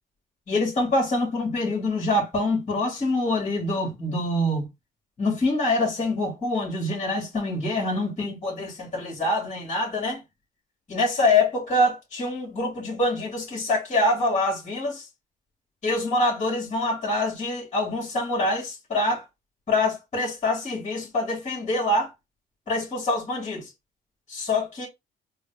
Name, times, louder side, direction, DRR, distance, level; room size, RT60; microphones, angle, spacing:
voice 1, 0.5-4.6 5.2-10.2 10.9-15.1 15.8-19.2 19.7-22.1 22.7-23.7 24.3-24.9, left 2 dB, 35° left, 2.1 m, -25 dB
3.8 x 2.3 x 3.3 m
cardioid pair, 90°, 20 cm